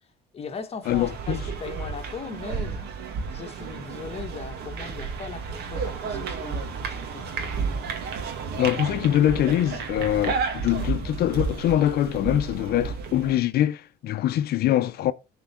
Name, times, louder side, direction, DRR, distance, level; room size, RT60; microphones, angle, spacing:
voice 1, 0.3-2.9 3.3-7.4, left 5 dB, 35° left, 1.6 m, -39 dB
sound 1, 0.8-13.4, right 5 dB, 75° right, 2.2 m, -32 dB
voice 2, 0.9-1.4 8.6-15.1, left 12 dB, 65° left, 0.7 m, -23 dB
11.5 x 4.7 x 6.1 m
cardioid pair, 110°, 17 cm